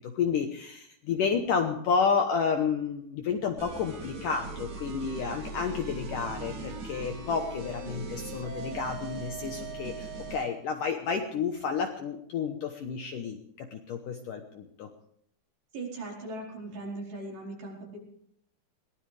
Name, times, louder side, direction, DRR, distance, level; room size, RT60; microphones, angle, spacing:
voice 1, 0.0-14.9, left 6 dB, 65° left, 4 dB, 2.2 m, -30 dB
sound 1, 3.6-10.5, right 3 dB, 85° right, 6.0 m, -39 dB
voice 2, 15.7-18.0, right 2 dB, 60° right, -2 dB, 6.4 m, -39 dB
22.5 x 18.5 x 3.4 m, 0.67 s
omnidirectional pair, 5.0 m